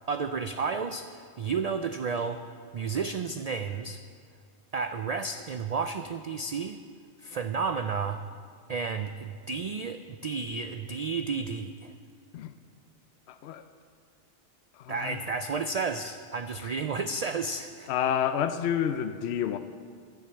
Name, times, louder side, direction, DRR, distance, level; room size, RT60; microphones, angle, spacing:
voice 1, 0.0-2.4 2.7-4.0 4.7-6.8 7.2-8.2 8.7-11.9 14.9-17.9, right 5 dB, 60° right, 8 dB, 0.4 m, -32 dB
voice 2, 13.3-13.6 14.8-15.2 16.6-16.7 17.9-19.6, left 9 dB, 70° left, 10 dB, 0.8 m, -29 dB
10.5 x 10.0 x 7.5 m, 2.1 s
omnidirectional pair, 1.2 m